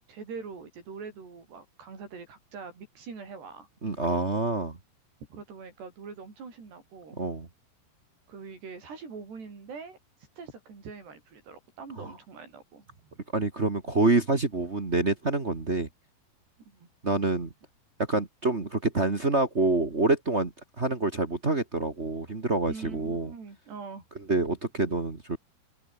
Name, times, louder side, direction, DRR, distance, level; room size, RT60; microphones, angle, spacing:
voice 1, 0.1-3.7 5.3-7.2 8.3-10.0 10.4-13.0 16.7-16.9 22.7-24.1, right 5 dB, 65° right, 8.8 m, -43 dB
voice 2, 3.8-4.8 7.2-7.5 12.0-12.1 13.3-15.9 17.0-17.5 18.1-20.5 20.8-23.3 24.3-25.4, right 2 dB, 45° right, 0.8 m, -27 dB
omnidirectional pair, 5.2 m